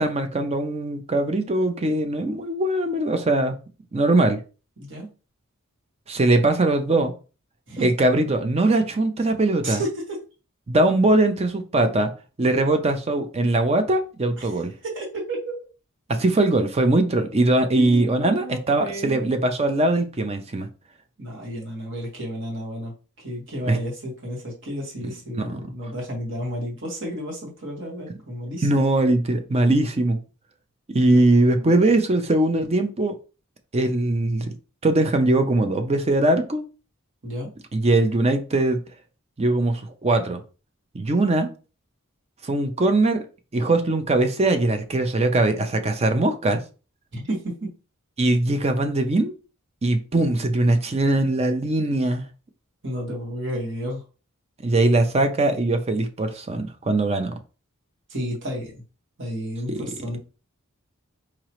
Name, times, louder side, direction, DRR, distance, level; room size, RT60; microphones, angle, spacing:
voice 1, 0.0-3.6 3.9-4.4 6.1-7.1 7.8-9.8 10.7-12.1 12.4-14.7 16.1-20.7 23.7-23.8 25.4-25.5 28.6-30.2 30.9-33.1 33.7-34.5 34.8-36.7 37.7-38.8 39.4-40.4 40.9-41.5 42.4-43.3 43.5-46.6 48.2-49.3 49.8-52.2 54.6-57.3 59.7-59.8, right 2 dB, 30° right, 0.5 m, -21 dB
voice 2, 9.6-10.2 14.4-14.5 14.8-15.5 17.8-19.3 21.2-28.9 31.1-31.8 37.2-37.5 47.1-47.7 52.8-54.0 58.1-58.8 59.2-60.2, equal, 60° right, 1.8 m, -32 dB
4.9 x 2.9 x 3.0 m
head